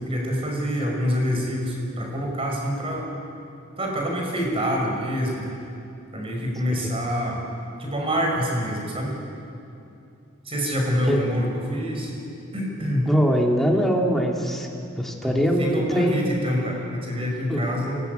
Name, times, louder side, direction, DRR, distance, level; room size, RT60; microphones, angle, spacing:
voice 1, 0.0-3.1 3.8-5.4 6.1-7.4 7.8-9.1 10.5-12.1 12.5-13.1 15.2-18.0, equal, 30° right, 0 dB, 5.5 m, -26 dB
voice 2, 13.1-14.7 15.0-16.2 17.5-17.7, equal, ahead, 0 dB, 2.6 m, -22 dB
23.0 x 18.5 x 9.3 m, 2.7 s
head